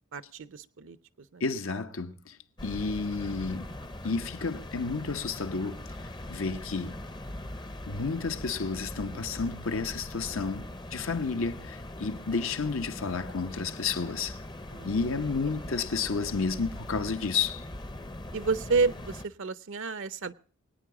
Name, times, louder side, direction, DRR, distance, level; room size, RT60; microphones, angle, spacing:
voice 1, 0.1-1.0 1.3-1.4 14.7-15.0 18.3-20.3, right 4 dB, 65° right, 0.6 m, -30 dB
voice 2, 1.4-2.4 2.6-3.7 4.0-5.8 6.3-7.0 7.9-10.6 10.9-14.4 14.8-17.6, left 4 dB, 75° left, 1.0 m, -31 dB
sound 1, 2.6-19.3, left 1 dB, 20° left, 0.7 m, -41 dB
23.0 x 9.4 x 4.8 m
head